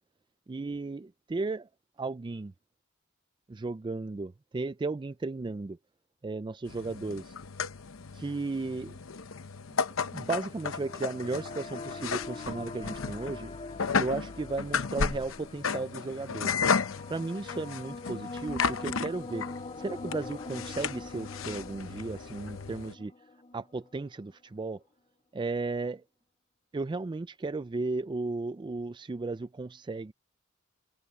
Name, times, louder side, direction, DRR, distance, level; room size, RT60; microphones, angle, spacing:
voice 1, 0.5-1.7 2.0-2.5 3.5-5.8 6.2-7.3 8.1-9.0 9.7-13.5 14.0-16.6 17.1-19.5 19.8-23.1 23.5-24.8 25.3-26.0 26.7-30.1, right 3 dB, 25° right, 0.3 m, -35 dB
sound 1, 6.7-22.9, left 5 dB, 80° left, 0.8 m, -34 dB
sound 2, 9.9-24.1, left 3 dB, 30° left, 0.6 m, -44 dB
head